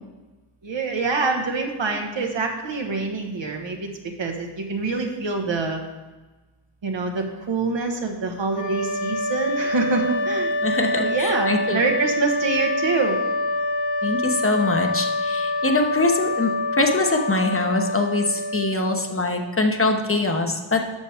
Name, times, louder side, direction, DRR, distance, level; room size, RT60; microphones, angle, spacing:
voice 1, 0.6-3.9 4.2-5.8 6.8-10.6 10.9-13.2, right 4 dB, 75° right, 2 dB, 1.4 m, -25 dB
sound 1, 8.5-19.4, left 2 dB, 85° left, 1.2 m, -26 dB
voice 2, 10.6-11.8 14.0-16.5 16.8-21.0, left 2 dB, 30° left, 4 dB, 0.9 m, -23 dB
12.5 x 6.5 x 3.5 m, 1.2 s
wide cardioid pair, 115°, 44 cm